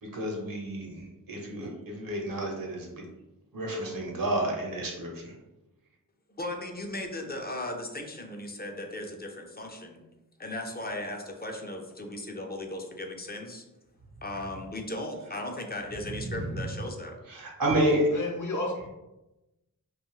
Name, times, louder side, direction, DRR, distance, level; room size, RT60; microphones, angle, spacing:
voice 1, 0.0-3.0 3.5-5.4 16.2-16.7 17.3-18.3, right 1 dB, 80° right, -1 dB, 0.8 m, -30 dB
voice 2, 6.4-10.0 10.4-13.6 14.2-17.2, left 1 dB, 30° left, 3 dB, 0.4 m, -37 dB
voice 3, 18.1-18.9, left 2 dB, 65° left, 0 dB, 0.7 m, -32 dB
2.6 x 2.3 x 3.0 m, 0.98 s
wide cardioid pair, 50°, 34 cm